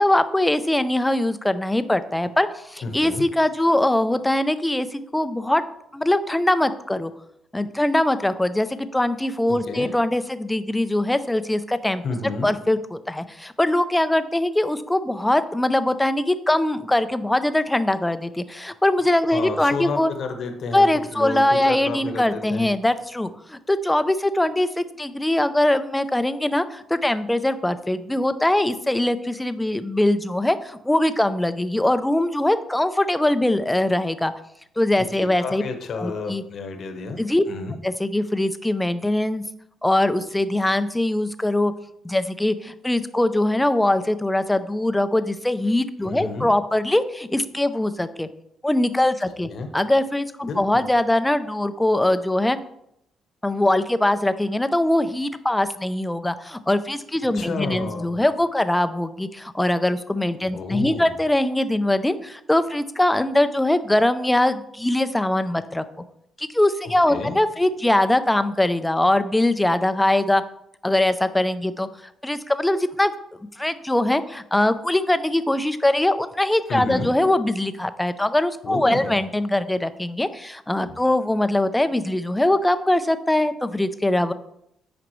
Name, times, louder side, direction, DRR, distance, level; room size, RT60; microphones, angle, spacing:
voice 1, 0.0-5.6 5.9-7.1 7.5-20.1 20.7-34.3 34.8-35.6 36.0-36.4 37.2-37.4 37.8-39.4 39.8-41.7 42.0-48.3 48.6-52.6 53.4-65.8 66.4-70.4 70.8-71.9 72.2-73.1 73.6-84.3, left 1 dB, 10° left, 11 dB, 0.5 m, -22 dB
voice 2, 2.8-3.2 9.5-9.9 12.0-12.5 19.3-20.9 21.1-22.7 35.2-37.2 37.5-37.8 46.1-46.5 49.5-49.7 50.4-50.8 57.3-58.2 60.5-61.1 67.1-67.3 76.7-77.1 78.6-79.1, left 3 dB, 60° left, 5 dB, 1.0 m, -30 dB
9.0 x 5.1 x 3.1 m, 0.77 s
cardioid pair, 90°, 0 cm